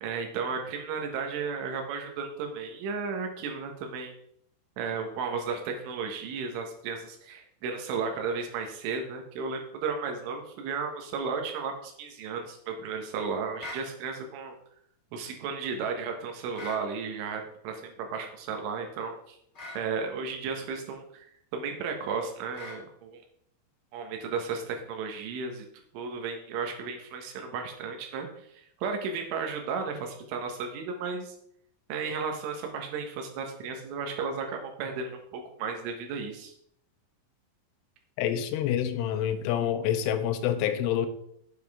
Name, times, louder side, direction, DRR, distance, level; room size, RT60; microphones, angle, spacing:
voice 1, 0.0-4.1 4.8-14.5 15.1-19.4 19.8-21.3 21.5-23.2 23.9-25.7 25.9-28.5 28.8-31.4 31.9-36.5, right 5 dB, 75° right, 3 dB, 3.8 m, -34 dB
sound 1, 13.6-13.9 16.5-16.8 19.5-19.8 22.5-22.8, left 2 dB, 25° left, 1.6 m, -40 dB
voice 2, 38.2-41.1, left 10 dB, 85° left, 9 dB, 3.1 m, -27 dB
9.5 x 7.3 x 3.6 m, 0.71 s
omnidirectional pair, 5.7 m